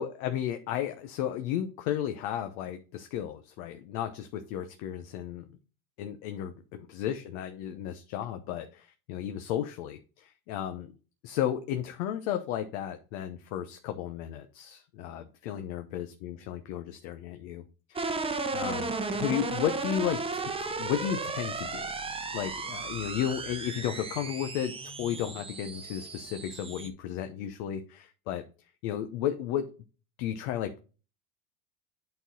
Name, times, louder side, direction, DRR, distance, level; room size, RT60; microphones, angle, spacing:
voice 1, 0.0-5.4 6.0-10.9 11.2-18.2 18.5-21.8 22.3-28.4 28.8-29.7 30.2-30.8, left 10 dB, 75° left, 7 dB, 0.9 m, -34 dB
sound 1, 18.0-26.9, right 3 dB, 15° right, 0.8 m, -35 dB
8.9 x 4.3 x 3.9 m, 0.35 s
supercardioid pair, 110°, 43 cm